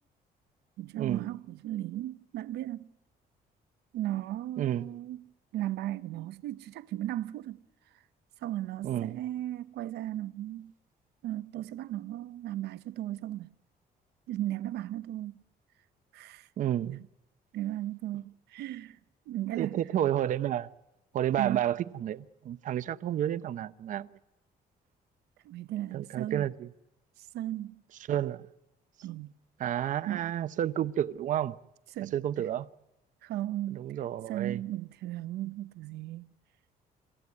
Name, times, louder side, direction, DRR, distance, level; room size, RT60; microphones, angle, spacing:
voice 1, 0.8-2.9 3.9-7.6 7.9-8.0 8.4-10.7 11.2-13.5 14.3-15.4 16.1-16.5 16.8-17.0 17.5-19.0 19.3-19.8 21.4-21.6 25.4-26.4 27.2-27.8 29.0-29.3 30.1-30.3 31.9-32.5 33.2-33.9 34.3-36.3, right 13 dB, 90° right, 0.8 m, -36 dB
voice 2, 4.6-4.9 8.8-9.2 16.6-17.0 19.6-20.7 21.1-24.2 25.9-26.7 28.1-28.5 29.6-31.6 32.1-32.7 33.7-34.6, right 11 dB, 50° right, 0.8 m, -30 dB
28.5 x 15.0 x 9.7 m
cardioid pair, 170°, 17 cm